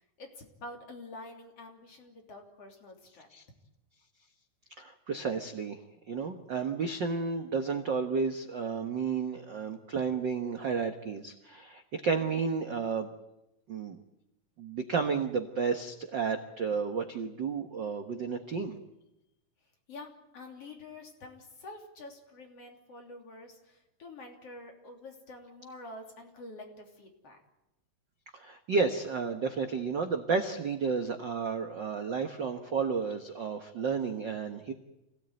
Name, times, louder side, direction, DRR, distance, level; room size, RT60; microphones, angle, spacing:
voice 1, 0.2-3.3 19.9-27.4, left 2 dB, 45° left, 2 dB, 4.0 m, -47 dB
voice 2, 4.8-5.8 6.1-13.1 13.7-14.0 14.6-18.7 28.3-34.7, right 5 dB, 60° right, 5 dB, 1.2 m, -32 dB
27.0 x 17.5 x 9.1 m, 0.91 s
omnidirectional pair, 4.0 m